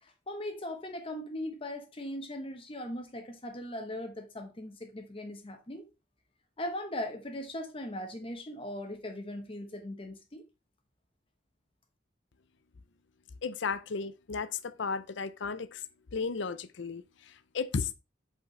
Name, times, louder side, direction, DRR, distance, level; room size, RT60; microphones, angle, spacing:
voice 1, 0.0-5.9 6.6-10.5, left 1 dB, 30° left, 1.0 m, -39 dB
voice 2, 13.4-15.8 16.1-17.9, left 5 dB, 70° left, 0.6 m, -34 dB
8.0 x 4.5 x 3.2 m
head